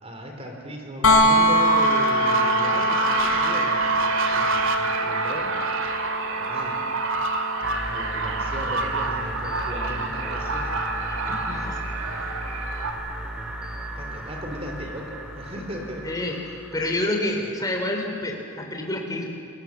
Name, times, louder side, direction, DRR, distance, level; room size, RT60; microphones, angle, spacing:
voice 1, 0.0-5.5 6.4-6.8 7.9-10.7 11.9-12.2 14.0-16.2, equal, 30° right, 2 dB, 3.6 m, -36 dB
sound 1, 1.0-12.8 14.8-14.9, equal, 80° left, 3.6 m, -26 dB
sound 2, 1.5-12.9, right 4 dB, 60° right, 2.3 m, -27 dB
sound 3, 7.6-17.1, right 1 dB, 5° right, 2.3 m, -34 dB
voice 2, 11.1-11.8 12.1-12.3 16.0-16.4 16.7-19.2, left 1 dB, 15° left, 1 dB, 3.4 m, -28 dB
30.0 x 22.0 x 7.3 m, 2.4 s
head